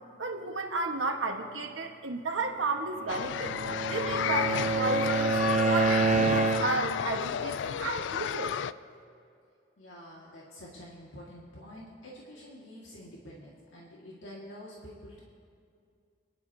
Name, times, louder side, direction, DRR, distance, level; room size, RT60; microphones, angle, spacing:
voice 1, 0.2-3.5 3.9-5.4 5.7-8.5, right 3 dB, 80° right, 3 dB, 1.3 m, -33 dB
Bowed string instrument, 3.0-7.0, right 4 dB, 40° right, 0.5 m, -28 dB
sound 1, 3.1-8.7, left 8 dB, 70° left, 0.3 m, -32 dB
voice 2, 9.8-15.2, equal, 85° left, -4 dB, 1.8 m, -47 dB
30.0 x 11.0 x 2.8 m, 2.3 s
head